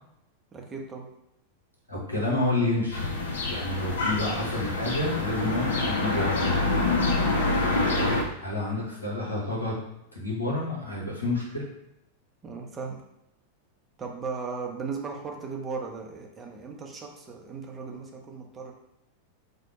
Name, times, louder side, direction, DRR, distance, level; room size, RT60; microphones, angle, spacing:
voice 1, 0.5-1.1 4.2-4.5 7.9-8.2 12.4-13.0 14.0-18.7, right 4 dB, 20° right, 1 dB, 0.6 m, -37 dB
voice 2, 1.9-3.0 3.5-6.4 8.4-9.8 10.1-11.6, left 2 dB, 80° left, -4 dB, 1.0 m, -29 dB
sound 1, 2.9-8.2, left 2 dB, 65° left, 0.5 m, -26 dB
2.8 x 2.1 x 3.9 m, 0.83 s
figure-of-eight pair, 90°, 0 cm